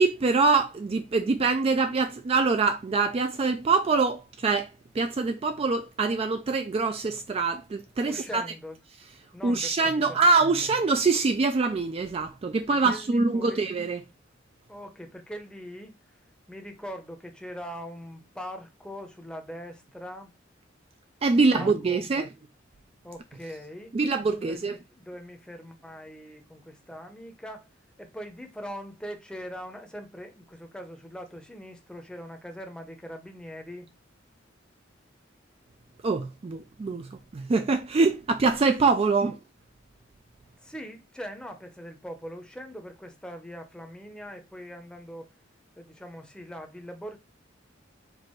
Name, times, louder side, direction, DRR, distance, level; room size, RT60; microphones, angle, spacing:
voice 1, 0.0-4.7 4.9-8.4 9.4-14.0 21.2-22.3 23.9-24.8 36.0-39.4, right 4 dB, 30° right, 0.3 m, -24 dB
voice 2, 8.0-8.8 9.3-10.2 12.7-13.7 14.7-15.9 16.5-20.3 21.4-22.3 23.0-23.9 24.4-27.7 28.0-33.9 39.1-39.2 40.6-45.3 45.8-47.2, equal, 5° left, 0.7 m, -41 dB
4.6 x 2.5 x 4.4 m
head